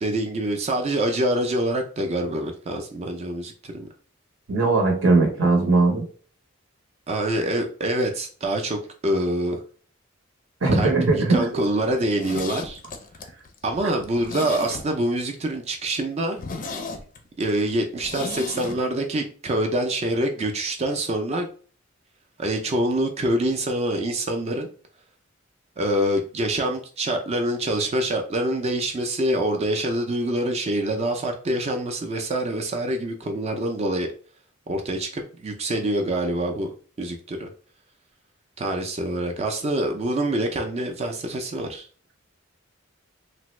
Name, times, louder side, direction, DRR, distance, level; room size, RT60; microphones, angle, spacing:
voice 1, 0.0-3.9 7.1-9.6 10.7-12.8 13.6-16.4 17.4-21.5 22.4-24.7 25.8-34.1 34.7-37.5 38.6-41.9, right 1 dB, 30° right, 3 dB, 0.4 m, -25 dB
voice 2, 4.5-6.1 10.6-11.5, right 3 dB, 70° right, 2 dB, 0.8 m, -19 dB
Zipper (clothing), 12.0-15.2 15.6-15.7 16.0-16.1 16.4-18.8 19.0-19.1, left 3 dB, 40° left, 0.5 m, -35 dB
3.3 x 2.1 x 3.0 m, 0.41 s
head